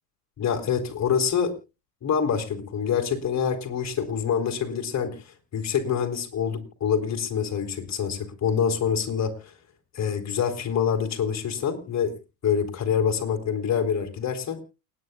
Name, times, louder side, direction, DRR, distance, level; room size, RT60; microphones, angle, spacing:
voice 1, 0.4-1.5 2.0-5.2 5.5-9.3 9.9-12.1 12.4-14.6, left 7 dB, 35° left, 6 dB, 3.5 m, -26 dB
29.0 x 9.8 x 2.3 m, 0.28 s
hypercardioid pair, 90°, 49 cm